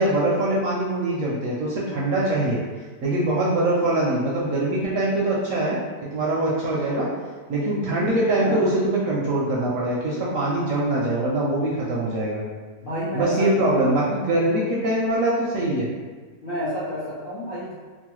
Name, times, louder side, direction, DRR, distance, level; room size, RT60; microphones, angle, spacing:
voice 1, 0.0-2.6 3.0-5.8 6.1-7.1 7.5-12.4 13.1-15.9, right 1 dB, 70° right, -5 dB, 0.8 m, -23 dB
voice 2, 12.8-14.2 16.4-17.7, equal, 55° left, -11 dB, 0.6 m, -29 dB
3.0 x 2.1 x 3.0 m, 1.4 s
omnidirectional pair, 1.7 m